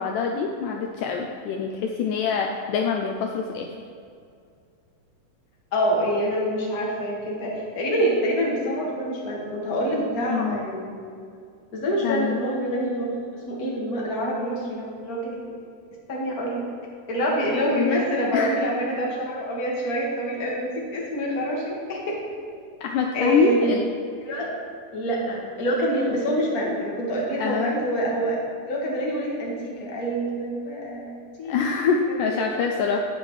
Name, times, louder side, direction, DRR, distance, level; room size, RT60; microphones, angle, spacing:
voice 1, 0.0-3.7 10.3-10.7 12.0-12.4 17.7-18.0 18.3-18.6 22.8-23.9 27.4-27.8 31.5-33.1, left 5 dB, 90° left, 2 dB, 1.8 m, -25 dB
voice 2, 5.7-11.0 11.7-13.1 13.3-15.5 16.1-16.7 17.1-22.2 23.1-23.7 24.2-24.5 24.9-28.4 28.7-31.9, equal, 40° left, -3 dB, 1.3 m, -26 dB
11.0 x 9.4 x 3.2 m, 2.3 s
omnidirectional pair, 4.3 m